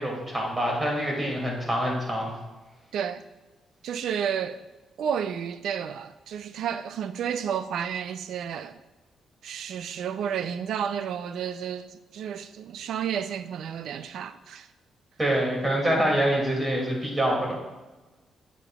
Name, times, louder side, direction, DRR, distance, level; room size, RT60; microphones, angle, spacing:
voice 1, 0.0-2.3 15.2-17.6, right 1 dB, 15° right, 2.3 m, -25 dB
voice 2, 3.8-4.6 5.0-8.8 9.4-14.7, right 8 dB, 75° right, 0.4 m, -31 dB
8.9 x 8.0 x 2.3 m
cardioid pair, 125°, 0 cm